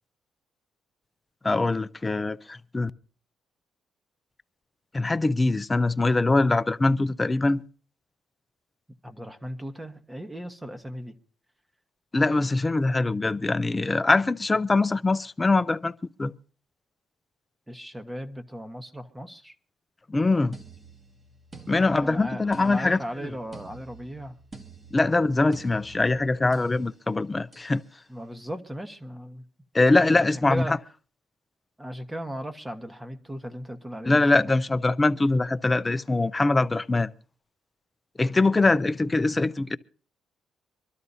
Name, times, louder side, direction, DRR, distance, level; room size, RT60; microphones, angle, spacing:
voice 1, 1.4-2.9 4.9-7.6 12.1-15.9 16.2-16.3 20.1-20.6 21.7-23.0 24.9-27.8 29.7-30.7 34.0-37.1 38.2-39.8, left 2 dB, 20° left, 0.6 m, -23 dB
voice 2, 9.0-11.1 17.7-19.6 22.0-24.4 28.1-29.4 30.1-30.8 31.8-34.4, equal, 10° right, 1.4 m, -37 dB
sound 1, 20.5-26.8 27.5-27.8, right 3 dB, 30° right, 2.0 m, -48 dB
25.0 x 12.5 x 2.8 m
cardioid pair, 90°, 0 cm